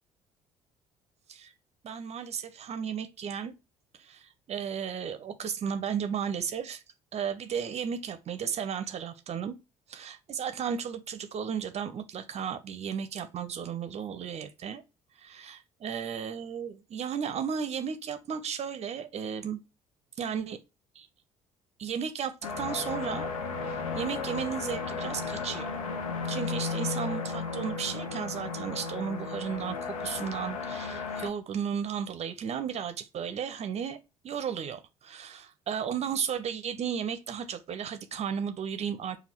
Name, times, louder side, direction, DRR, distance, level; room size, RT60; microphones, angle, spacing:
voice 1, 1.8-3.5 4.0-6.8 7.1-9.6 9.9-14.8 15.2-19.6 20.2-20.6 20.9-21.1 21.8-23.3 23.7-25.8 26.3-34.0 34.2-39.2, right 7 dB, 35° right, 0.6 m, -34 dB
sound 1, 22.4-31.3, left 4 dB, 75° left, 0.6 m, -34 dB
5.2 x 2.3 x 4.3 m
figure-of-eight pair, 50°, 18 cm